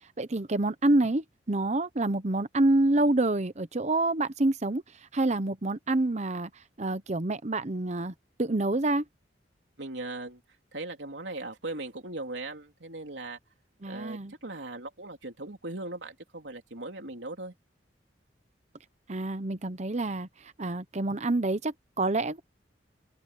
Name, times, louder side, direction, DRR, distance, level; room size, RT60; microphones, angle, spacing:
voice 1, 0.2-4.8 5.1-6.5 6.8-8.1 8.4-9.0 13.8-14.3 19.1-20.3 20.6-22.4, right 2 dB, 40° right, 0.9 m, -27 dB
voice 2, 9.8-10.4 10.7-13.4 13.9-17.5, right 2 dB, 80° right, 3.3 m, -39 dB
open air
head